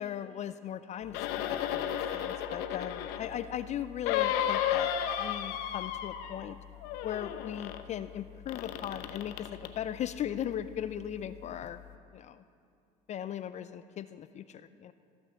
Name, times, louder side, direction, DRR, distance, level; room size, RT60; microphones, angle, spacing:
voice 1, 0.0-4.9 5.2-6.6 7.0-11.8 12.1-12.4 13.1-14.9, left 10 dB, 40° left, 13 dB, 0.4 m, -38 dB
sound 1, 1.1-3.4 4.1-6.5 6.8-7.8 8.5-9.8 10.4-10.5, left 10 dB, 75° left, 0.7 m, -33 dB
15.0 x 6.0 x 6.8 m, 2.4 s
supercardioid pair, 80°, 17 cm